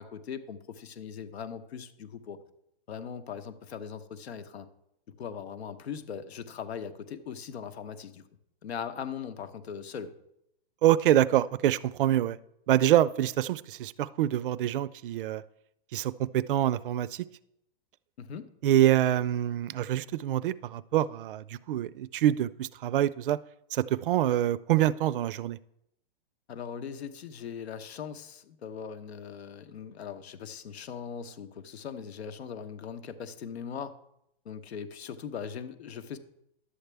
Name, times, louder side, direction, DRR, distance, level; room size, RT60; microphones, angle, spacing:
voice 1, 0.0-2.4 2.9-4.7 5.2-8.2 8.6-10.1 18.2-18.5 26.5-34.0 34.4-36.2, left 7 dB, 90° left, 10 dB, 1.0 m, -40 dB
voice 2, 10.8-12.4 12.7-15.4 15.9-17.3 18.6-23.4 23.7-25.6, right 12 dB, 60° right, 19 dB, 0.4 m, -26 dB
11.5 x 7.9 x 3.4 m, 0.78 s
hypercardioid pair, 165°, 31 cm